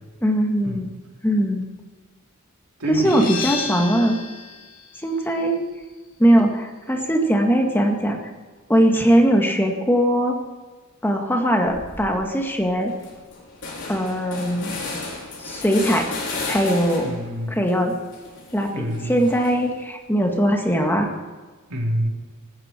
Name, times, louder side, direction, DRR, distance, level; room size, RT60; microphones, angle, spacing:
voice 1, 0.2-0.9 1.2-1.6 2.9-4.2 5.0-5.6 6.2-8.2 8.7-10.4 11.0-12.9 13.9-14.7 15.4-16.1 16.5-17.1 17.5-17.9 18.5-21.1, equal, 10° left, 2 dB, 1.9 m, -20 dB
voice 2, 2.8-3.5 17.0-17.7 18.7-19.3 21.7-22.1, equal, 90° right, 0 dB, 3.6 m, -27 dB
sound 1, 3.1-8.5, left 5 dB, 40° left, 2.7 m, -35 dB
sound 2, 11.7-12.1 12.5-12.6 12.9-17.3 17.7-19.8, left 3 dB, 55° left, 5.5 m, -34 dB
19.0 x 16.0 x 4.5 m, 1.4 s
head